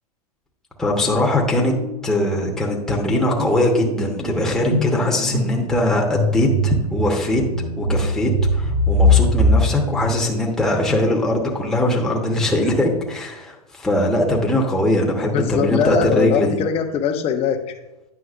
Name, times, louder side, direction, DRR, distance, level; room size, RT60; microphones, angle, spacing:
voice 1, 0.8-1.7 2.0-7.4 7.8-16.6, left 1 dB, 5° left, -2 dB, 1.0 m, -21 dB
sound 1, 1.6-1.9 2.2-11.0, left 1 dB, 30° right, 1.3 m, -22 dB
voice 2, 15.3-17.8, left 7 dB, 30° left, 6 dB, 0.8 m, -21 dB
9.7 x 5.6 x 2.5 m, 0.98 s
hypercardioid pair, 120°, 20 cm